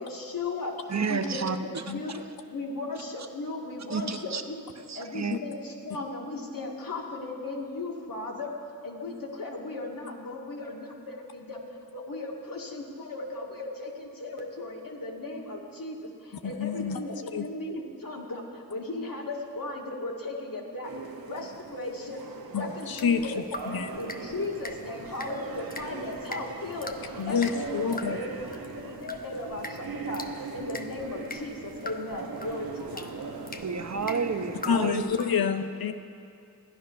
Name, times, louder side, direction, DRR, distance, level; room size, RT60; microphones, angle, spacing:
voice 1, 0.0-1.5 1.9-2.2 2.5-4.7 4.9-8.5 8.8-11.6 11.9-20.9 21.3-23.4 24.0-27.7 28.0-28.3 28.8-33.2 33.4-33.6, left 2 dB, 70° left, -1 dB, 2.1 m, -36 dB
voice 2, 0.9-1.8 2.1-2.2 3.9-4.4 4.9-5.4 33.6-35.2, right 5 dB, 50° right, 8 dB, 0.9 m, -31 dB
voice 3, 16.4-17.0 17.3-17.5 22.5-23.3 23.7-23.9 27.2-28.2 34.7-35.9, left 6 dB, 85° left, 8 dB, 0.7 m, -28 dB
sound 1, 20.8-34.9, right 4 dB, 85° right, 1.0 m, -40 dB
sound 2, 22.9-35.4, left 2 dB, 25° left, 1.0 m, -44 dB
14.5 x 10.0 x 5.7 m, 2.4 s
cardioid pair, 40°, 35 cm